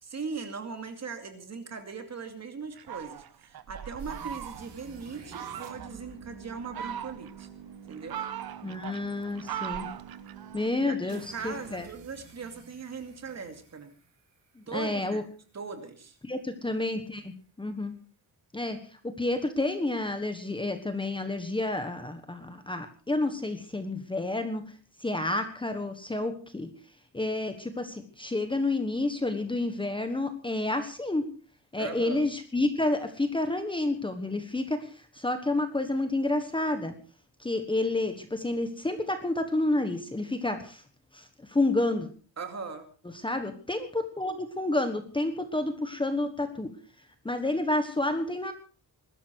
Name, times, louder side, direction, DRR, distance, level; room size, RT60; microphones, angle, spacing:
voice 1, 0.0-7.5 7.9-8.2 10.8-13.9 14.7-15.2 15.5-16.2 31.8-32.3 42.4-42.9, right 5 dB, 35° right, 6 dB, 2.5 m, -39 dB
Fowl, 2.8-4.8 5.3-5.9 6.5-7.5 7.9-10.7, right 10 dB, 55° right, 1.1 m, -39 dB
sound 1, 4.0-14.9, right 7 dB, 70° right, 4.2 m, -49 dB
voice 2, 8.6-9.9 10.5-11.9 14.6-15.2 16.2-17.9 18.5-18.8 19.2-24.6 25.0-26.7 27.1-31.3 31.7-36.9 37.4-40.8 41.1-42.1 43.2-46.7 47.2-48.5, left 2 dB, 10° left, 7 dB, 1.4 m, -30 dB
21.5 x 12.5 x 4.6 m, 0.40 s
wide cardioid pair, 180°, 43 cm